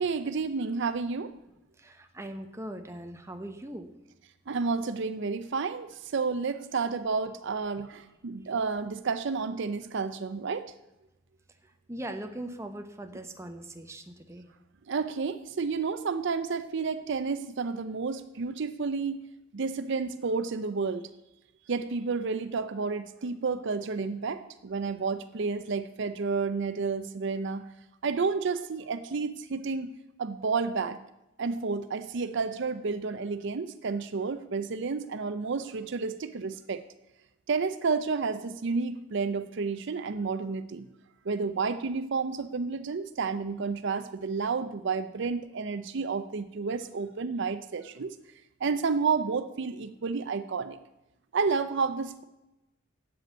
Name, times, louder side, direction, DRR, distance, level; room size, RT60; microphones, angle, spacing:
voice 1, 0.0-1.3 4.5-10.7 14.9-19.2 19.5-21.0 21.7-27.7 28.0-29.9 30.2-31.0 31.4-36.8 37.5-40.9 41.3-48.1 48.6-50.8 51.3-52.2, right 4 dB, 60° right, 11 dB, 0.5 m, -31 dB
voice 2, 1.8-3.9 11.9-14.5, right 1 dB, 15° right, 6 dB, 0.9 m, -40 dB
7.7 x 7.7 x 8.7 m, 0.95 s
head